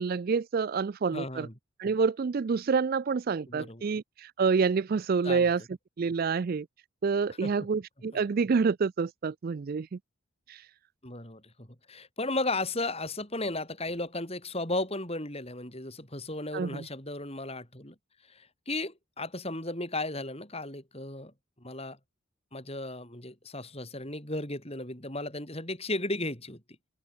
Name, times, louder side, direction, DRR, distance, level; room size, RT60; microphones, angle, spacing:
voice 1, 0.0-1.5 1.8-5.6 6.0-6.7 7.0-10.0 10.5-10.6 16.5-16.8, right 5 dB, 45° right, 0.3 m, -28 dB
voice 2, 1.1-1.5 3.5-3.8 5.2-5.5 7.3-7.5 11.0-18.0 18.3-21.3 21.6-22.0 22.5-26.6, left 2 dB, 25° left, 7.2 m, -35 dB
open air
head